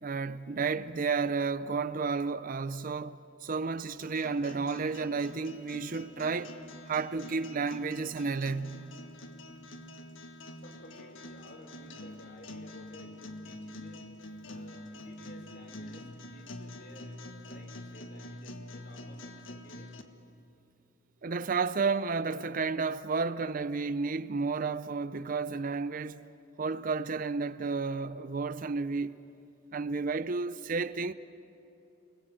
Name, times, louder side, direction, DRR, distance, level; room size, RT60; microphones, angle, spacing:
voice 1, 0.0-6.5 6.9-8.8 21.2-26.3 26.6-29.2 29.7-31.1, right 4 dB, 45° right, 0.5 m, -32 dB
sound 1, 4.0-20.0, left 1 dB, 80° left, 1.5 m, -46 dB
voice 2, 10.6-14.1 14.5-17.2 17.5-20.0, equal, 55° left, 3.7 m, -54 dB
29.0 x 21.0 x 7.6 m
head